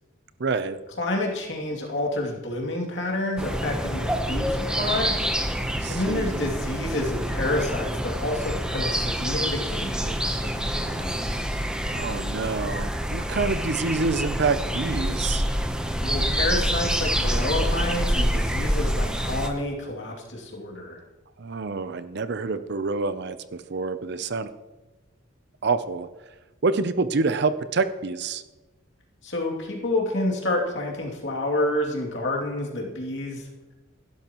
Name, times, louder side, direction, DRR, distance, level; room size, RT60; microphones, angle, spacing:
voice 1, 0.4-0.8 5.7-6.5 11.9-15.4 21.4-24.5 25.6-26.1 26.6-28.4, right 4 dB, 55° right, 12 dB, 0.6 m, -27 dB
voice 2, 1.0-5.1 5.9-11.4 16.0-21.0 29.2-33.5, left 1 dB, 60° left, -1 dB, 2.7 m, -29 dB
sound 1, 3.4-19.5, equal, 5° right, 0.9 m, -27 dB
16.0 x 12.0 x 3.0 m, 1.1 s
head